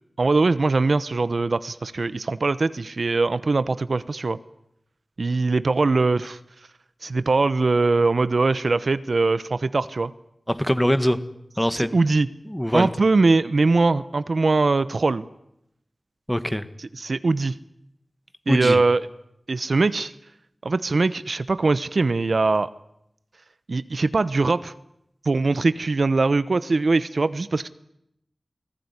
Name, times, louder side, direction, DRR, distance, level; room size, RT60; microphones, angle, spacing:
voice 1, 0.2-4.4 5.2-6.4 7.0-10.1 11.7-12.3 12.7-15.3 16.8-17.5 18.5-19.0 19.5-20.1 20.6-22.7 23.7-24.7 25.2-27.7, right 3 dB, 70° right, 15 dB, 1.0 m, -21 dB
voice 2, 10.5-11.2 11.6-11.9 12.5-12.9 16.3-16.6 18.5-18.8, equal, 5° left, 12 dB, 1.7 m, -22 dB
29.0 x 19.0 x 9.8 m, 0.80 s
wide cardioid pair, 75°, 0 cm